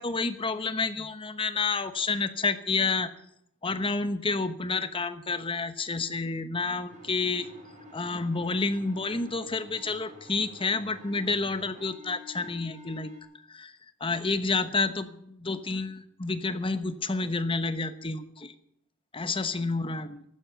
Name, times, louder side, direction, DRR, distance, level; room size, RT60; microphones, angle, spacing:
voice 1, 0.0-3.1 3.6-7.5 7.9-13.1 13.5-18.5 19.1-20.2, left 3 dB, 25° left, 11 dB, 1.0 m, -29 dB
sound 1, 6.9-13.2, left 2 dB, 35° right, 5.0 m, -49 dB
14.5 x 12.0 x 7.0 m, 0.74 s
head